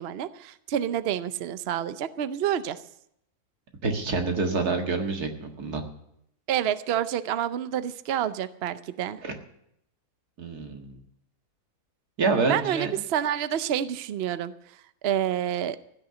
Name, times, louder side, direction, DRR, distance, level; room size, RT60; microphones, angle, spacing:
voice 1, 0.0-2.8 6.5-9.2 12.5-14.5 15.0-15.8, right 10 dB, 55° right, 13 dB, 0.7 m, -28 dB
voice 2, 3.8-5.8 9.2-9.3 10.4-11.0 12.2-12.9, right 4 dB, 90° right, 4 dB, 2.2 m, -27 dB
15.5 x 6.7 x 9.8 m, 0.76 s
omnidirectional pair, 1.6 m